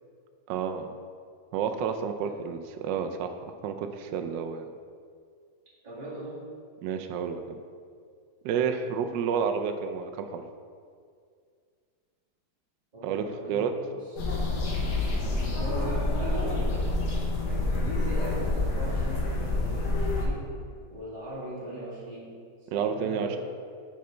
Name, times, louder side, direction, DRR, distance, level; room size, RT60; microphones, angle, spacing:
voice 1, 0.5-0.9 1.5-3.3 3.6-4.7 6.8-7.6 8.4-10.4 13.0-13.7 22.7-23.4, right 7 dB, 70° right, 6 dB, 1.1 m, -30 dB
voice 2, 5.8-6.5 12.9-14.2 15.2-20.5 20.8-22.3 22.6-23.4, right 1 dB, 20° right, -9 dB, 2.1 m, -40 dB
sound 1, 14.2-20.3, left 2 dB, 55° left, 1.6 m, -27 dB
6.6 x 6.6 x 4.4 m, 2.2 s
omnidirectional pair, 2.2 m